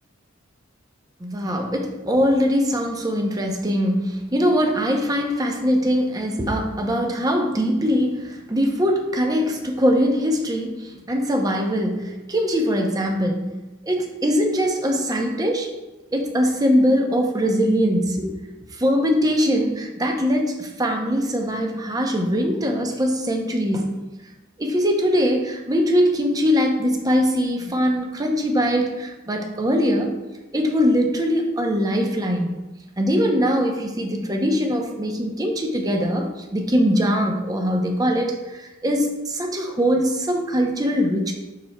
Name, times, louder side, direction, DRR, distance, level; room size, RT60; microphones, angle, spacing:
voice 1, 1.2-13.6 13.8-15.7 16.1-18.4 18.7-23.9 24.6-30.2 30.5-32.5 33.0-41.3, equal, 20° right, 3 dB, 0.6 m, -22 dB
11.0 x 4.1 x 2.2 m, 1.1 s
head